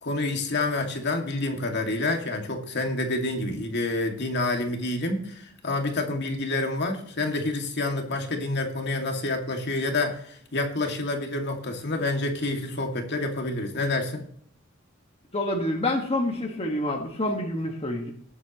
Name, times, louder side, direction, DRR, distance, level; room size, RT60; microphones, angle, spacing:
voice 1, 0.0-14.2, left 2 dB, 60° left, 3 dB, 2.2 m, -28 dB
voice 2, 15.3-18.1, left 1 dB, 30° left, 1 dB, 1.6 m, -27 dB
19.5 x 8.5 x 3.0 m, 0.62 s
head